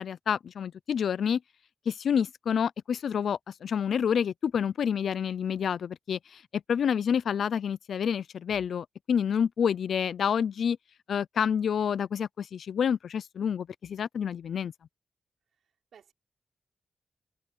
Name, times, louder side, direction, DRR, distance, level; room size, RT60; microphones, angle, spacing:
voice 1, 0.0-1.4 1.9-6.4 6.7-10.8 11.1-14.7, left 7 dB, 85° left, 0.5 m, -28 dB
voice 2, 15.5-16.1, right 8 dB, 85° right, 5.0 m, -59 dB
cardioid pair, 45°, 0 cm